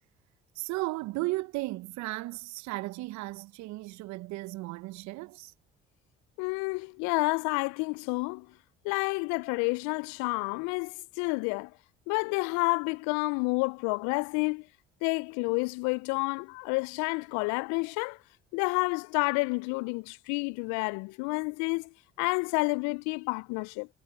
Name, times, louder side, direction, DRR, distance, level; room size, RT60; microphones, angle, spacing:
voice 1, 0.5-5.5, right 20 dB, 65° right, 1.3 m, -35 dB
voice 2, 6.4-8.5 8.8-11.7 12.1-14.7 15.0-18.2 18.5-23.9, left 30 dB, 65° left, 0.6 m, -30 dB
hypercardioid pair, 55°, 31 cm